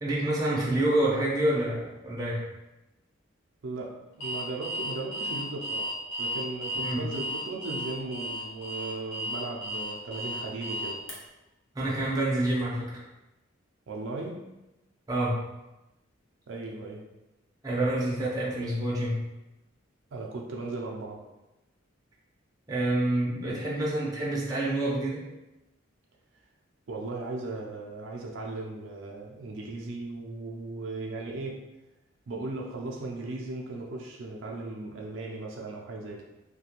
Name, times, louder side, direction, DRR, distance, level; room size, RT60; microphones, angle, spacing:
voice 1, 0.0-2.4 6.7-7.0 11.7-13.0 15.1-15.4 17.6-19.2 22.7-25.2, right 1 dB, 20° right, -5 dB, 0.5 m, -27 dB
voice 2, 3.6-5.9 6.2-11.0 13.9-14.4 16.5-17.0 20.1-21.2 26.9-31.6 32.3-36.2, right 2 dB, 70° right, -1 dB, 0.4 m, -37 dB
Alarm, 4.2-11.1, equal, 65° left, 0.6 m, -34 dB
2.4 x 2.2 x 2.9 m, 0.99 s
head